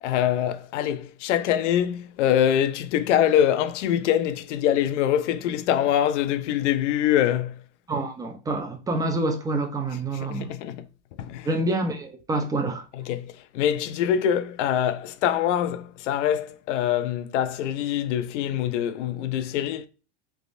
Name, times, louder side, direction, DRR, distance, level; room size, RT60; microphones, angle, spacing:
voice 1, 0.0-7.6 10.3-10.8 11.2-11.5 12.9-19.9, left 10 dB, 80° left, 0.6 m, -24 dB
voice 2, 7.9-10.5 11.5-12.8, right 2 dB, 10° right, 0.4 m, -27 dB
3.5 x 3.0 x 2.5 m
supercardioid pair, 125°, 35 cm